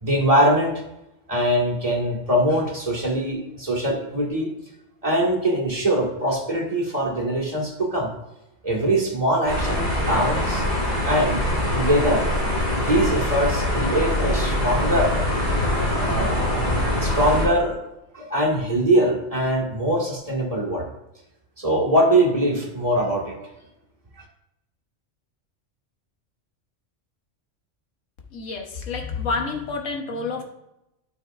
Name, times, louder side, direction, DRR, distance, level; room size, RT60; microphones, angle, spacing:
voice 1, 0.0-0.8 1.3-4.5 5.0-8.1 8.6-10.6 11.0-11.4 11.7-12.3 12.8-15.2 16.0-16.5 17.0-17.8 18.1-20.9 21.6-23.4, right 1 dB, 30° right, -4 dB, 1.9 m, -22 dB
sound 1, 9.5-17.5, left 1 dB, 50° left, 3.2 m, -23 dB
voice 2, 28.3-30.4, left 4 dB, 85° left, 2 dB, 1.5 m, -28 dB
12.5 x 6.1 x 2.5 m, 0.87 s
omnidirectional pair, 1.3 m